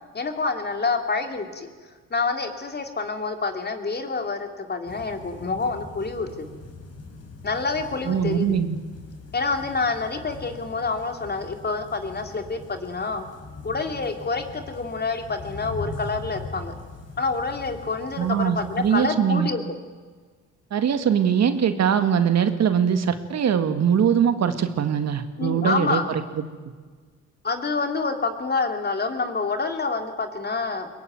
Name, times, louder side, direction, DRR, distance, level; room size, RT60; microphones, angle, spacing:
voice 1, 0.1-6.5 7.4-8.6 9.3-13.2 13.6-16.7 17.2-19.6 25.4-26.0 27.4-30.9, left 4 dB, 35° left, 6 dB, 3.0 m, -27 dB
sound 1, 4.9-19.1, left 3 dB, 55° left, 5.5 m, -41 dB
voice 2, 8.0-8.8 18.2-19.5 20.7-26.4, right 8 dB, 60° right, 9 dB, 1.9 m, -22 dB
22.5 x 20.5 x 9.3 m, 1.5 s
cardioid pair, 90°, 30 cm